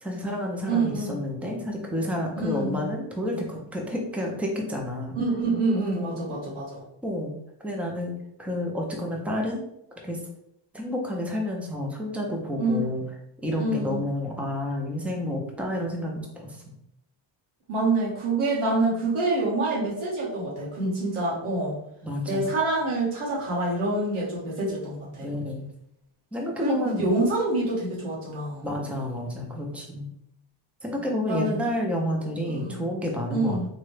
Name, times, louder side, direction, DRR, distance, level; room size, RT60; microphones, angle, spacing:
voice 1, 0.0-5.2 5.8-6.2 7.0-7.3 7.6-8.1 8.4-9.7 10.0-10.2 10.7-13.0 13.4-16.6 22.0-22.5 25.2-25.6 26.3-27.1 28.6-30.1 30.8-33.6, left 1 dB, 5° right, 1 dB, 0.4 m, -30 dB
voice 2, 0.7-1.1 2.4-2.8 5.2-6.8 12.6-12.8 13.6-14.0 17.7-21.8 22.3-25.3 26.6-28.6 31.3-31.6 32.6-32.8 33.3-33.6, right 2 dB, 85° right, -6 dB, 1.4 m, -26 dB
3.8 x 2.1 x 3.1 m, 0.77 s
wide cardioid pair, 150°, 48 cm